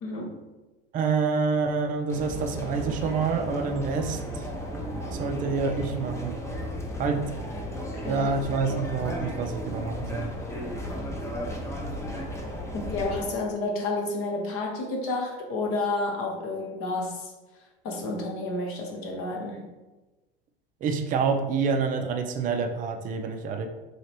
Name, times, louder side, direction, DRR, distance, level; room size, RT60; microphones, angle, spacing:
voice 1, 0.0-0.5 8.0-8.3 12.7-17.3 17.8-19.7, left 2 dB, 50° left, 1 dB, 0.9 m, -30 dB
voice 2, 0.9-4.5 5.1-6.4 7.0-7.2 8.0-10.3 20.8-23.7, right 5 dB, 30° right, 4 dB, 0.4 m, -27 dB
sound 1, 2.1-13.3, equal, 10° left, 0.6 m, -34 dB
3.1 x 2.8 x 2.9 m, 1.1 s
hypercardioid pair, 85°, 30 cm